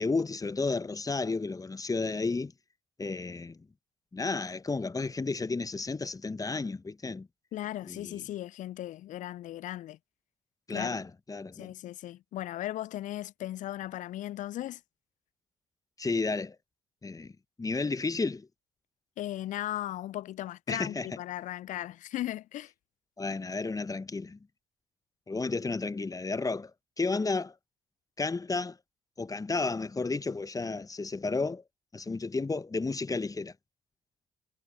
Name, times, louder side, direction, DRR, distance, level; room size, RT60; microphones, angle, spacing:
voice 1, 0.0-2.5 3.0-3.6 4.1-7.3 7.8-8.2 10.7-11.7 16.0-16.5 17.0-17.3 17.6-18.5 20.7-21.1 23.2-24.4 25.3-26.7 27.0-27.5 28.2-28.8 29.2-31.6 31.9-33.5, left 3 dB, 20° left, 1.1 m, -32 dB
voice 2, 7.5-10.0 10.7-11.0 11.6-14.8 19.2-22.7, left 14 dB, 50° left, 0.4 m, -37 dB
figure-of-eight pair, 50°, 17 cm